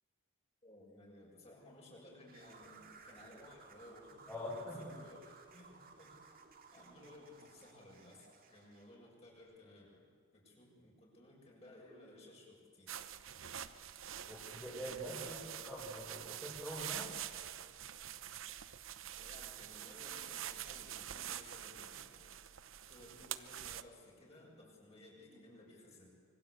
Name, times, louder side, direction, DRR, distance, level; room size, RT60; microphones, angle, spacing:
voice 1, 0.6-6.3 6.7-13.0 15.2-15.8 19.0-22.3 22.9-26.1, left 1 dB, 30° left, -2 dB, 6.8 m, -58 dB
sound 1, 2.3-8.9, right 4 dB, 45° right, 2.2 m, -59 dB
voice 2, 4.3-4.9 14.3-15.4 15.7-17.1, equal, 10° left, -6 dB, 4.8 m, -44 dB
sound 2, 12.9-23.8, right 11 dB, 70° right, 0.9 m, -46 dB
25.5 x 24.0 x 8.4 m, 2.1 s
head